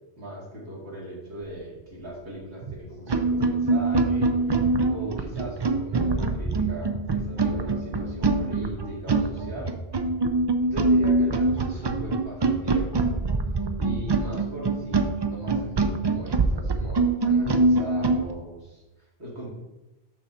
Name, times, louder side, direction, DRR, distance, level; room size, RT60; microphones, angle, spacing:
voice 1, 0.2-9.7 10.6-13.1 13.8-19.5, equal, 90° right, -5 dB, 2.5 m, -38 dB
sound 1, 2.6-2.7 3.1-18.2, right 3 dB, 45° right, 0.3 m, -24 dB
6.4 x 6.2 x 4.2 m, 1.0 s
omnidirectional pair, 1.1 m